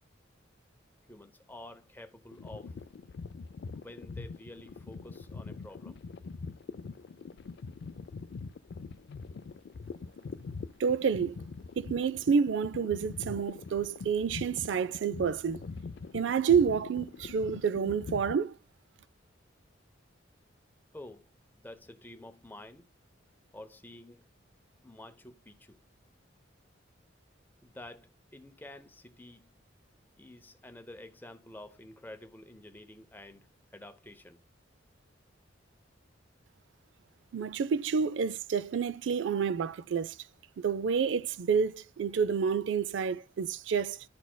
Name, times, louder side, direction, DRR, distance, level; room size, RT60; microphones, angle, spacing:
voice 1, 1.1-2.9 3.7-6.0 20.9-21.3 21.6-22.9 23.5-24.3 24.8-25.8 27.6-29.6 30.2-34.4, left 1 dB, 10° left, 0.7 m, -49 dB
sound 1, 2.3-18.4, left 4 dB, 60° left, 0.3 m, -43 dB
voice 2, 10.8-11.4 11.8-15.6 16.1-18.5 37.3-40.2 40.6-44.0, right 6 dB, 70° right, 0.4 m, -29 dB
11.0 x 4.1 x 2.2 m
head